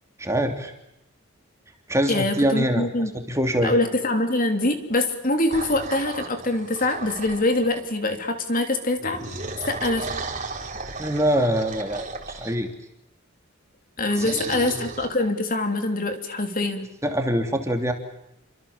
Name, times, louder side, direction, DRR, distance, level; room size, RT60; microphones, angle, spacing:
voice 1, 0.2-0.7 1.9-3.7 11.0-12.7 14.2-14.8 17.0-17.9, equal, 15° right, 4 dB, 3.1 m, -24 dB
voice 2, 2.1-3.1 3.6-9.2 9.7-10.1 14.0-16.9, left 2 dB, 40° left, 6 dB, 3.4 m, -24 dB
sound 1, 5.5-7.9 9.0-12.6 14.1-15.1, right 3 dB, 35° right, 4.0 m, -35 dB
29.5 x 25.5 x 7.3 m, 0.83 s
head